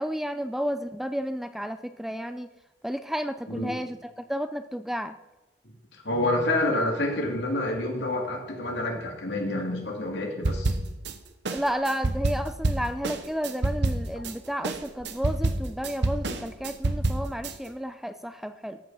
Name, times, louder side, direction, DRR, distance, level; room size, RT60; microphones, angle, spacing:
voice 1, 0.0-2.5 2.8-5.1 11.5-18.8, equal, ahead, 10 dB, 0.4 m, -32 dB
voice 2, 6.0-10.7, left 1 dB, 80° left, 2 dB, 2.4 m, -28 dB
sound 1, 10.4-11.1 11.4-14.3 14.6-17.5, right 2 dB, 80° right, 0.9 m, -27 dB
14.0 x 5.8 x 5.6 m, 1.0 s
head